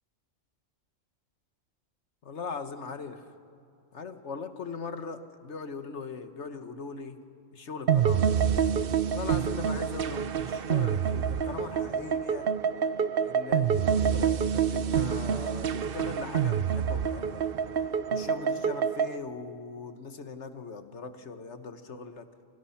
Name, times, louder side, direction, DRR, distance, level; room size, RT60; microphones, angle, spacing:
voice 1, 2.2-3.3 3.9-7.2 7.5-8.3 9.1-12.5 13.2-17.5 18.1-22.3, left 4 dB, 60° left, 9 dB, 1.6 m, -40 dB
sound 1, 7.9-19.2, right 7 dB, 50° right, 0.8 m, -27 dB
30.0 x 25.0 x 5.8 m, 2.6 s
omnidirectional pair, 1.3 m